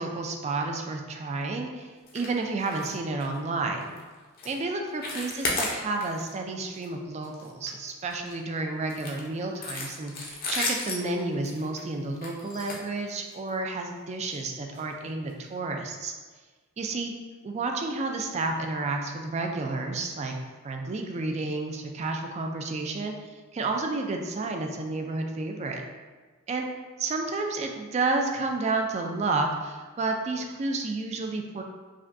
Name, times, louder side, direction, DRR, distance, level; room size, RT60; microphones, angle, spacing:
voice 1, 0.0-3.9 4.4-16.1 16.8-17.1 17.4-20.3 20.6-23.1 23.5-25.8 26.5-26.7 27.0-31.6, right 3 dB, 30° right, 3 dB, 0.3 m, -31 dB
sound 1, 2.1-2.3 2.6-2.9 3.2-3.4 3.8-4.0 4.4-4.6 4.9-6.3 6.6-6.9 7.2-8.3 8.9-13.5 14.2-14.4 14.8-14.9 15.3-15.4, left 3 dB, 45° left, 0.6 m, -34 dB
4.9 x 2.2 x 2.6 m, 1.4 s
head